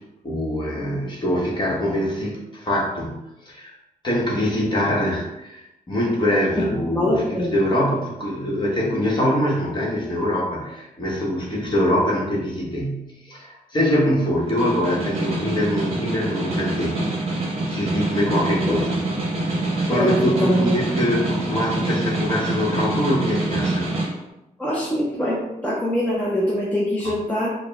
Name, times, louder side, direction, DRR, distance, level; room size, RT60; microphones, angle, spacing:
voice 1, 0.2-3.7 4.0-19.0 19.5-23.9, equal, 30° left, -4 dB, 1.1 m, -24 dB
voice 2, 7.0-7.5 18.3-18.8 19.9-20.8 24.6-27.6, left 1 dB, 10° left, -6 dB, 0.5 m, -23 dB
Snare drum, 14.4-24.1, right 2 dB, 45° right, 0.9 m, -25 dB
4.8 x 2.2 x 3.4 m, 0.92 s
wide cardioid pair, 165°, 14 cm